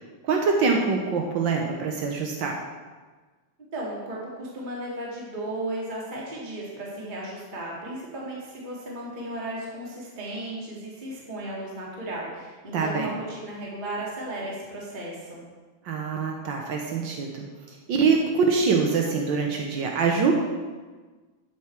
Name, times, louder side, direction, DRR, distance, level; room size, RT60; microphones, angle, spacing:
voice 1, 0.2-2.6 12.7-13.1 15.8-17.5 17.9-20.3, right 5 dB, 80° right, 1 dB, 1.0 m, -24 dB
voice 2, 3.7-15.4, right 1 dB, 20° right, -5 dB, 1.8 m, -35 dB
12.5 x 7.2 x 4.5 m, 1.4 s
omnidirectional pair, 3.4 m